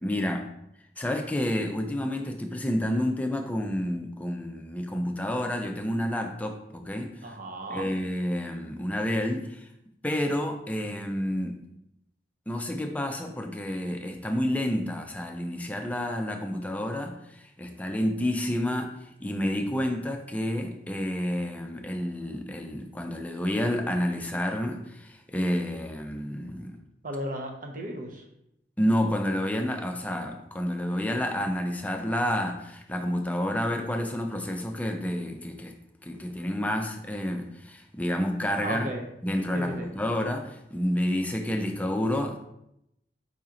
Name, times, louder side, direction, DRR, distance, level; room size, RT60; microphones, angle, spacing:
voice 1, 0.0-0.5 1.0-7.3 7.7-9.7 10.0-11.6 12.5-26.8 28.8-35.7 36.0-38.9 39.2-42.4, left 1 dB, 10° left, 4 dB, 0.4 m, -29 dB
voice 2, 7.2-7.9 27.0-28.2 38.6-39.1 39.5-39.9, right 1 dB, 50° right, 1 dB, 0.7 m, -35 dB
4.8 x 2.9 x 3.7 m, 0.80 s
head